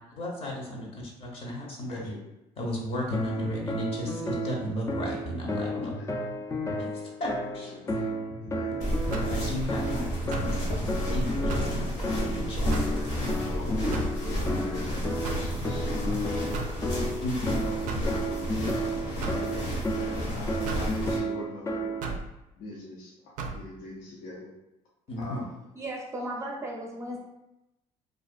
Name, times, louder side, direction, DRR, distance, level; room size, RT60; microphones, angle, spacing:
voice 1, 0.2-2.1 2.6-5.9 6.8-7.7 9.3-12.7 13.6-13.7 17.2-17.6 25.1-25.5, left 1 dB, 45° left, -2 dB, 0.7 m, -34 dB
voice 2, 1.9-2.2 5.7-6.1 7.6-8.1 8.4-8.8 12.5-13.2 13.4-16.8 17.4-18.9 19.3-22.0 22.6-24.5 25.2-25.5, left 2 dB, 85° left, -4 dB, 0.6 m, -42 dB
sound 1, 3.1-22.2, equal, 25° left, 0.4 m, -32 dB
sound 2, 8.8-21.2, equal, 65° left, 0.9 m, -32 dB
sound 3, 9.1-9.4 10.3-10.6 11.5-11.8 12.7-13.0 13.9-14.2 15.2-15.5 16.5-16.8 17.9-18.1 19.2-19.5 20.7-20.9 22.0-22.3 23.4-23.6, right 4 dB, 70° right, 0.4 m, -35 dB
voice 3, 25.8-27.3, right 1 dB, 20° right, -2 dB, 0.6 m, -35 dB
2.4 x 2.2 x 2.5 m, 0.91 s
cardioid pair, 90°, 14 cm